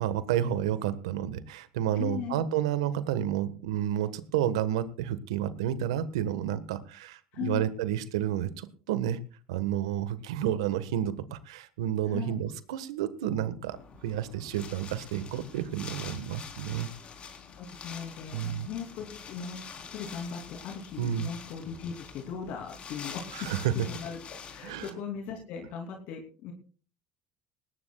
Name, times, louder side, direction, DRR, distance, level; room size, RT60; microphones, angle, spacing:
voice 1, 0.0-9.2 9.5-13.8 14.0-16.9 18.3-18.7 21.0-21.3 23.3-23.7 24.6-24.9, right 11 dB, 85° right, 13 dB, 1.4 m, -30 dB
voice 2, 2.0-2.5 7.3-7.7 12.1-12.4 17.5-24.2 24.5-26.5, left 7 dB, 70° left, 2 dB, 3.0 m, -38 dB
Wind, 13.7-24.9, left 6 dB, 45° left, 3.8 m, -46 dB
19.0 x 18.0 x 2.3 m, 0.39 s
supercardioid pair, 80°, 3 cm